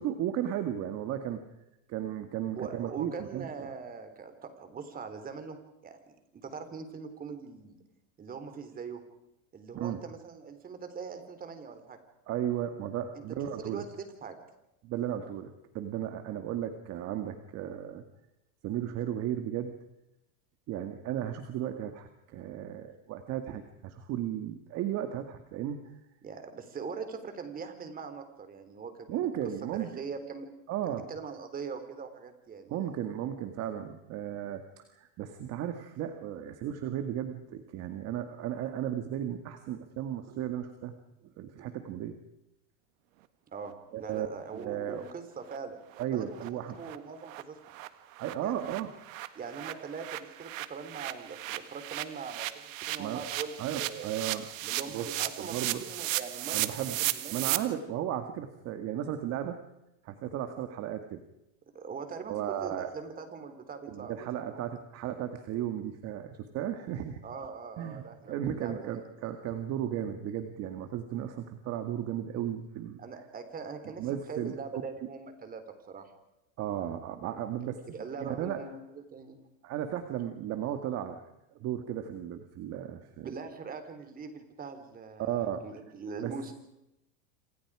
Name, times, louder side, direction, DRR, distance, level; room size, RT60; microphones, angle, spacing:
voice 1, 0.0-1.4 1.9-3.7 9.7-10.0 12.3-13.9 14.8-18.0 18.6-19.7 20.7-25.9 29.1-30.0 30.7-31.0 32.7-40.9 41.4-42.2 43.9-44.3 44.5-45.1 46.0-46.8 48.2-48.9 53.0-53.3 53.6-54.4 54.9-55.1 55.4-55.8 56.5-57.0 57.3-59.6 60.0-61.2 62.3-62.9 63.9-67.2 67.8-73.0 74.0-74.8 76.6-77.8 78.2-78.6 79.6-81.2 81.6-83.3 85.2-85.6 86.2-86.3, right 10 dB, 40° right, 7 dB, 2.1 m, -35 dB
voice 2, 2.5-5.6 5.8-7.8 8.2-9.0 9.5-12.0 13.1-13.2 13.6-14.4 26.2-30.5 30.9-32.8 43.5-43.7 44.0-47.6 48.4-48.6 49.4-54.1 54.6-57.6 61.7-64.6 67.2-69.1 73.0-75.6 75.9-76.1 77.6-79.4 83.2-86.5, right 5 dB, 20° right, 8 dB, 3.7 m, -42 dB
sound 1, 44.6-44.7 45.0-45.1 45.5-45.6 45.9-46.0 46.4-46.5 46.8-47.0 47.3-47.4 47.7-57.6, right 16 dB, 75° right, 1.8 m, -35 dB
27.5 x 27.0 x 5.0 m, 0.88 s
supercardioid pair, 145°, 40 cm